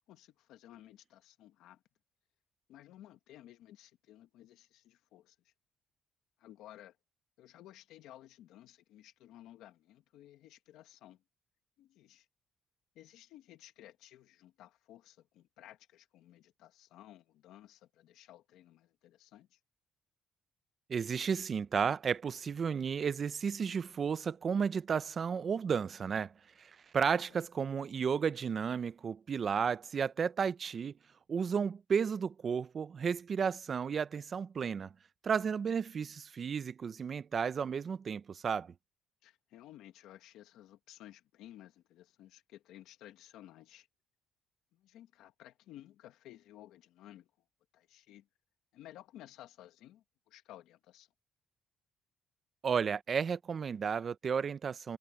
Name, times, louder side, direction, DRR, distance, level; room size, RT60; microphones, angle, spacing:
voice 1, 0.0-1.8 2.7-5.5 6.4-7.0 7.4-11.2 11.8-12.3 12.9-19.6 27.1-27.4 39.2-43.9 44.7-47.3 47.7-48.3 48.7-51.1, left 13 dB, 85° left, 1.2 m, -56 dB
voice 2, 20.9-26.3 26.6-30.9 31.3-34.9 35.2-38.7 52.6-55.0, right 6 dB, 40° right, 0.5 m, -33 dB
cardioid pair, 110°, 0 cm